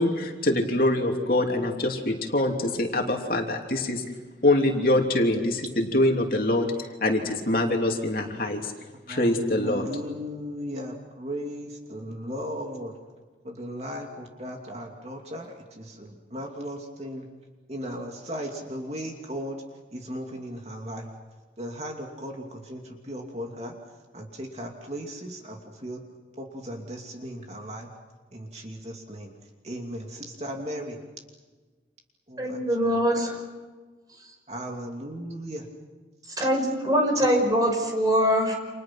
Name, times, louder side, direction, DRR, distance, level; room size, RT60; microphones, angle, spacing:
voice 1, 0.0-4.0 4.4-8.7 9.1-9.9, left 1 dB, 50° left, 2 dB, 3.3 m, -24 dB
voice 2, 9.0-12.9 13.4-17.3 17.7-19.6 19.9-21.1 21.6-23.7 24.1-26.0 26.4-27.9 28.3-29.3 29.6-31.0 32.3-32.6 34.5-35.7 36.4-36.5, equal, 35° right, 2 dB, 2.7 m, -36 dB
voice 3, 32.4-33.4 36.4-38.5, equal, 20° right, 2 dB, 6.0 m, -23 dB
30.0 x 27.5 x 6.1 m, 1.3 s
head